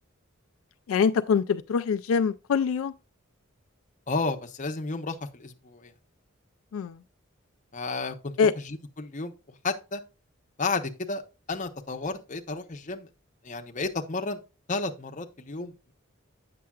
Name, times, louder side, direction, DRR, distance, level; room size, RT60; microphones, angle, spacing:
voice 1, 0.9-2.9 6.7-7.0 8.4-8.5, left 6 dB, 80° left, 0.3 m, -24 dB
voice 2, 4.1-5.9 7.7-9.3 9.6-10.0 10.6-11.2 11.5-13.1 13.4-14.4 14.7-15.9, left 3 dB, 35° left, 0.8 m, -32 dB
8.5 x 6.7 x 2.3 m
head